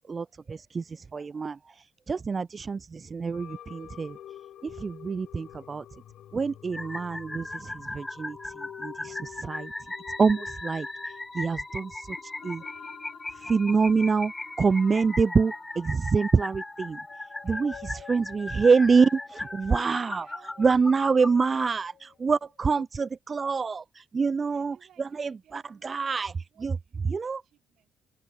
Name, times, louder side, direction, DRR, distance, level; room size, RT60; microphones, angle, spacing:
voice 1, 0.0-4.2 4.6-5.8 6.3-9.7 10.2-12.6 13.3-14.3 14.6-17.0 17.4-17.7 18.1-20.3 20.6-26.3 26.6-26.7 27.1-27.4, right 5 dB, 35° right, 0.4 m, -26 dB
sound 1, 3.3-22.9, left 11 dB, 75° left, 2.4 m, -49 dB
sound 2, 6.7-21.7, left 2 dB, 15° left, 0.7 m, -38 dB
voice 2, 17.5-18.6 19.0-20.9 21.2-21.7 22.0-22.2 24.2-26.0 26.3-27.9, right 10 dB, 70° right, 5.9 m, -60 dB
cardioid pair, 90°, 0 cm